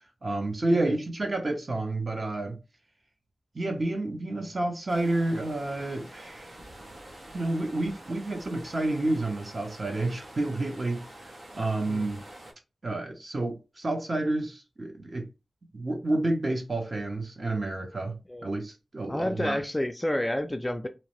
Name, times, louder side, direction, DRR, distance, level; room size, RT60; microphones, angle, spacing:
voice 1, 0.2-2.6 3.5-6.5 7.3-12.2 12.8-15.3 15.7-19.6, right 2 dB, 50° right, 0.7 m, -30 dB
sound 1, 4.9-12.5, right 1 dB, 85° right, 0.7 m, -47 dB
voice 2, 19.1-20.9, left 1 dB, 15° left, 0.3 m, -30 dB
2.7 x 2.0 x 2.9 m
wide cardioid pair, 95°, 0 cm